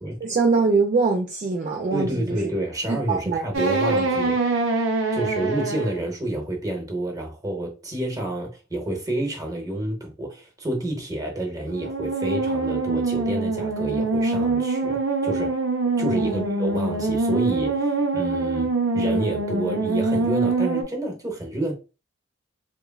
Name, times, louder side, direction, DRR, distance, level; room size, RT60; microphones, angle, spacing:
voice 1, 0.2-2.5 2.9-3.4 3.9-4.0 16.2-16.6, right 4 dB, 40° right, 0.3 m, -23 dB
voice 2, 1.9-4.3 5.1-15.6 16.0-21.7, right 1 dB, 20° right, 0.7 m, -29 dB
sound 1, 3.5-6.0 11.7-20.8, right 3 dB, 85° right, 0.6 m, -24 dB
2.9 x 2.2 x 2.2 m
head